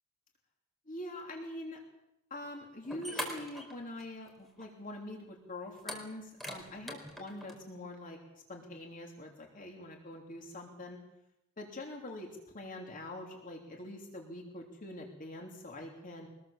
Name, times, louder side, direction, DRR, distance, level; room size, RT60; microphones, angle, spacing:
voice 1, 0.9-1.8 2.3-8.2 8.5-11.0 11.6-16.3, left 1 dB, 40° left, 1 dB, 3.2 m, -44 dB
sound 1, 2.4-2.5 2.8-4.3 4.6-4.7 5.8-7.6, equal, ahead, 4.4 m, -42 dB
25.0 x 20.0 x 7.3 m, 0.88 s
head